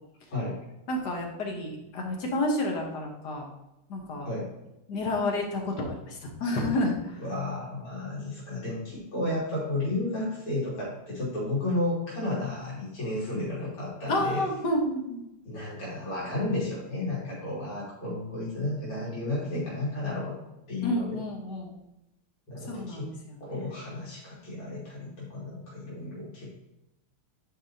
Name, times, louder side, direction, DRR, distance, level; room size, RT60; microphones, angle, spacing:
voice 1, 0.9-3.5 3.9-4.3 4.9-7.2 14.1-15.2 20.8-21.7 22.7-23.4, left 1 dB, 55° left, 1 dB, 1.6 m, -30 dB
voice 2, 7.2-14.4 15.5-20.4 20.7-21.2 22.5-23.1 23.4-26.5, left 2 dB, 80° left, -7 dB, 3.3 m, -32 dB
10.0 x 4.9 x 2.7 m, 0.92 s
omnidirectional pair, 2.4 m